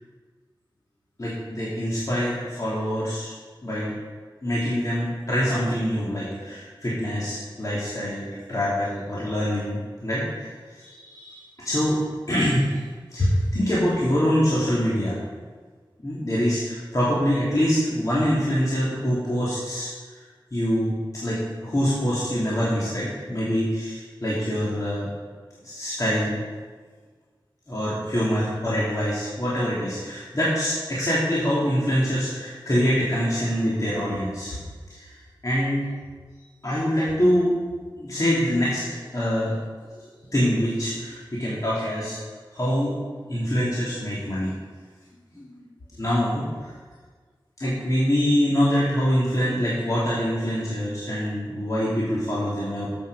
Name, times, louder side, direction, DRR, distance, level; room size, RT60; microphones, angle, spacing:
voice 1, 1.2-3.3 3.6-3.9 4.4-12.0 12.3-12.8 13.1-15.2 16.0-20.2 20.5-25.1 25.6-26.4 27.7-34.6 34.9-35.8 36.6-37.5 38.0-39.6 40.0-42.2 42.5-42.9 43.3-44.5 45.3-45.7 46.0-46.7 47.6-52.9, equal, 45° left, -8 dB, 2.7 m, -25 dB
13.0 x 7.8 x 4.8 m, 1.5 s
wide cardioid pair, 80°, 9 cm